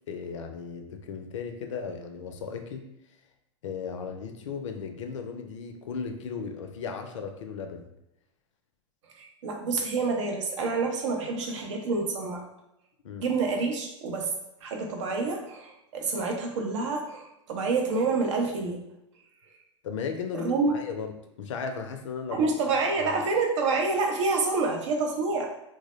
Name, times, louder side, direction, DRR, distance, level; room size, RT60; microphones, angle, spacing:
voice 1, 0.1-2.8 3.6-7.9 13.0-13.3 19.8-21.1 21.4-22.5 23.0-23.2, left 6 dB, 85° left, 6 dB, 0.4 m, -36 dB
voice 2, 9.2-12.4 13.2-14.3 14.6-18.8 20.3-20.8 22.3-25.6, right 4 dB, 75° right, 1 dB, 0.6 m, -28 dB
2.2 x 2.0 x 2.9 m, 0.83 s
hypercardioid pair, 110°, 16 cm